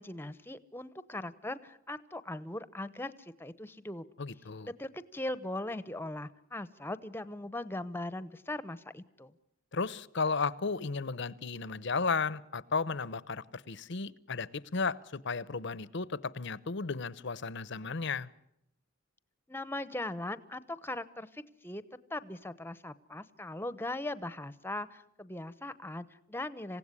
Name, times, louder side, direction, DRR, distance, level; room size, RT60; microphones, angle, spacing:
voice 1, 0.0-4.1 4.8-9.3 19.5-21.8 22.1-26.8, left 1 dB, 10° left, 15 dB, 0.9 m, -39 dB
voice 2, 4.2-4.7 9.7-18.3, left 4 dB, 60° left, 19 dB, 0.8 m, -34 dB
27.0 x 16.5 x 9.8 m, 0.80 s
head